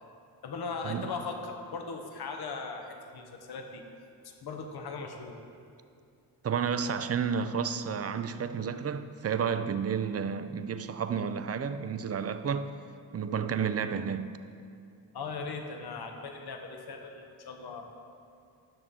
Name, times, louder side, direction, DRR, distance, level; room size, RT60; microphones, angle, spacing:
voice 1, 0.4-3.8 4.2-5.4 15.1-17.8, left 4 dB, 55° left, 1.0 m, -39 dB
voice 2, 6.4-12.7 13.1-14.4, right 6 dB, 35° right, 0.5 m, -31 dB
10.5 x 6.6 x 3.7 m
supercardioid pair, 45°, 46 cm